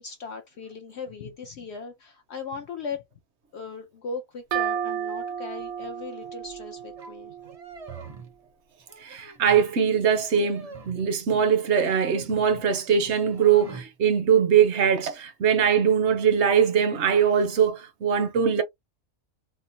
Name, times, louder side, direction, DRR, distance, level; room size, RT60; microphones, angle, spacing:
voice 1, 0.0-3.1 3.5-7.3 11.3-11.4, left 4 dB, 65° left, 0.8 m, -38 dB
sound 1, 4.5-8.1, right 9 dB, 85° right, 1.2 m, -32 dB
sound 2, 7.0-7.1 7.4-8.4 8.8-9.7 10.2-11.1 11.8-12.6 13.0-13.9, right 4 dB, 35° right, 0.6 m, -44 dB
voice 2, 9.0-18.6, right 7 dB, 60° right, 0.9 m, -22 dB
3.6 x 2.0 x 2.6 m
omnidirectional pair, 1.4 m